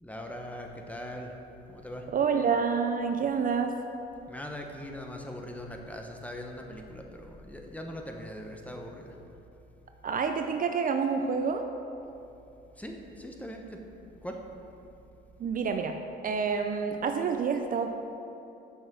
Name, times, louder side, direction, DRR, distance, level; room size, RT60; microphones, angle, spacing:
voice 1, 0.0-1.3 1.7-2.1 4.3-9.2 12.8-13.8 14.2-14.4, equal, 5° left, 2 dB, 1.0 m, -41 dB
voice 2, 2.1-3.7 10.0-11.7 15.4-15.9 16.2-17.9, right 6 dB, 40° right, 6 dB, 0.5 m, -28 dB
7.0 x 6.0 x 6.1 m, 2.8 s
cardioid pair, 90°, 21 cm